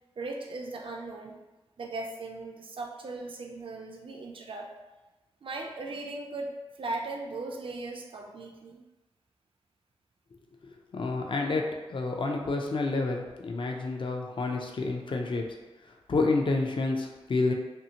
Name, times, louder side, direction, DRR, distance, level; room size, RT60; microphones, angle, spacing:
voice 1, 0.2-1.4 1.8-4.7 5.4-8.8, right 2 dB, 55° right, 1 dB, 0.4 m, -38 dB
voice 2, 10.6-11.6 11.9-15.4 16.1-17.5, left 3 dB, 55° left, 2 dB, 0.4 m, -29 dB
2.7 x 2.4 x 2.8 m, 1.1 s
cardioid pair, 55°, 10 cm